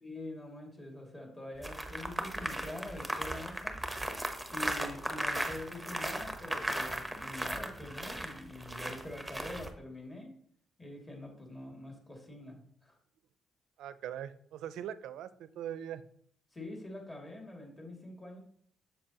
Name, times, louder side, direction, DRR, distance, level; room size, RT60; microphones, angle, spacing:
voice 1, 0.0-3.8 4.5-10.3 10.8-13.0 16.5-18.4, left 1 dB, 25° left, 0 dB, 2.4 m, -45 dB
sound 1, 1.6-9.7, right 1 dB, ahead, 0.9 m, -37 dB
voice 2, 13.8-16.0, right 10 dB, 85° right, 15 dB, 0.4 m, -41 dB
7.5 x 6.7 x 2.9 m, 0.62 s
cardioid pair, 90°, 0 cm